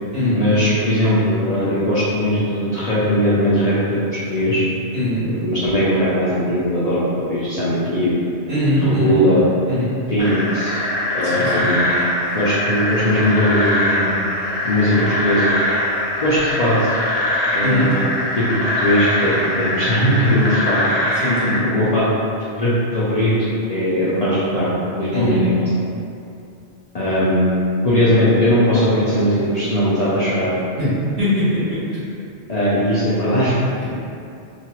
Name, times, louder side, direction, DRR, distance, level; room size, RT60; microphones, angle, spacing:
voice 1, 0.3-4.6 5.4-8.2 8.8-9.5 10.1-10.8 11.1-12.0 12.3-14.2 14.6-15.5 16.2-17.0 17.5-18.1 18.4-20.8 21.4-22.3 22.6-25.7 26.9-30.5 32.5-33.8, equal, 50° left, -10 dB, 0.5 m, -19 dB
voice 2, 4.9-5.2 8.5-9.2 9.7-9.9 11.2-11.6 17.6-17.9 21.1-21.6 25.1-25.4 30.8-30.9 31.2-32.1, left 1 dB, 60° right, -13 dB, 1.5 m, -21 dB
sound 1, 10.2-21.6, left 1 dB, 70° left, 0.9 m, -22 dB
3.1 x 2.2 x 2.8 m, 2.5 s
omnidirectional pair, 1.1 m